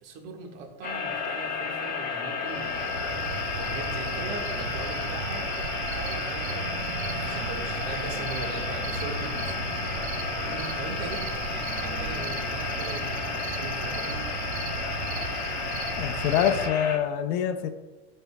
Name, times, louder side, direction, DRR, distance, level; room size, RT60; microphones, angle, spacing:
voice 1, 0.0-3.2 3.6-5.6 5.9-9.6 10.3-14.2, right 3 dB, 50° right, 2 dB, 1.6 m, -40 dB
sound 1, 0.8-17.0, left 5 dB, 25° left, 1.2 m, -32 dB
Cricket, 2.5-16.7, right 6 dB, 85° right, 0.8 m, -35 dB
sound 2, 6.5-14.5, equal, 15° right, 1.0 m, -45 dB
voice 2, 16.0-17.7, left 9 dB, 50° left, 10 dB, 0.6 m, -25 dB
12.0 x 5.4 x 2.2 m, 1.2 s
supercardioid pair, 125°, 33 cm